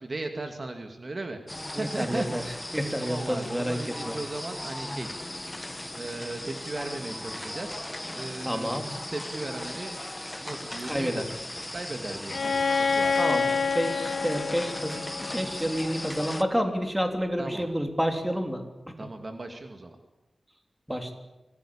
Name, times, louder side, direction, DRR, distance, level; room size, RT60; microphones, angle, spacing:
voice 1, 0.0-2.3 3.0-5.1 6.0-7.8 8.1-8.7 9.1-10.0 10.4-11.2 11.7-13.2 17.4-17.6 19.0-20.0, right 2 dB, 40° right, 5 dB, 2.4 m, -36 dB
sound 1, 1.5-16.4, left 1 dB, 15° left, 1.3 m, -38 dB
voice 2, 1.7-2.4 2.7-3.8 4.0-4.1 8.4-8.8 10.8-11.2 13.2-19.1 20.9-21.1, equal, 5° right, 4 dB, 3.4 m, -29 dB
Bowed string instrument, 12.3-16.1, left 5 dB, 65° left, 1.1 m, -28 dB
25.5 x 19.0 x 8.7 m, 1.0 s
wide cardioid pair, 105°, 0 cm